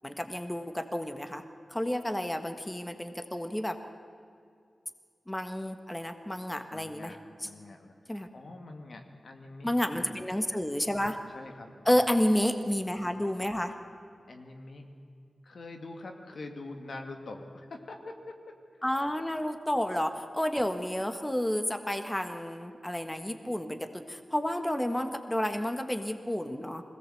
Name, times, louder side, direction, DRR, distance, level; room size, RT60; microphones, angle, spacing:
voice 1, 0.0-1.4 1.7-3.8 5.3-7.1 8.1-8.3 9.6-11.2 11.8-13.7 18.8-26.8, left 1 dB, 15° left, 7 dB, 1.5 m, -30 dB
voice 2, 6.7-10.1 11.3-12.2 14.3-14.9 15.4-18.8, left 2 dB, 70° left, 4 dB, 2.1 m, -45 dB
21.5 x 17.5 x 7.9 m, 2.4 s
cardioid pair, 50°, 0 cm